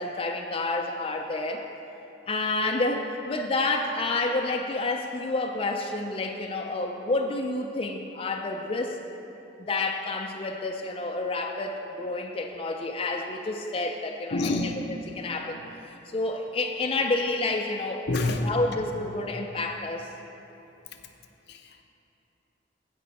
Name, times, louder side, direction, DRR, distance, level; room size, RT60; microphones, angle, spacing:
voice 1, 0.0-1.6 2.3-9.0 9.7-14.7 15.1-15.6 16.1-20.1, left 2 dB, 30° left, 2 dB, 0.4 m, -29 dB
voice 2, 14.3-14.8 18.1-18.5 21.5-21.8, left 2 dB, 65° left, 5 dB, 0.7 m, -27 dB
16.0 x 5.3 x 4.1 m, 2.9 s
head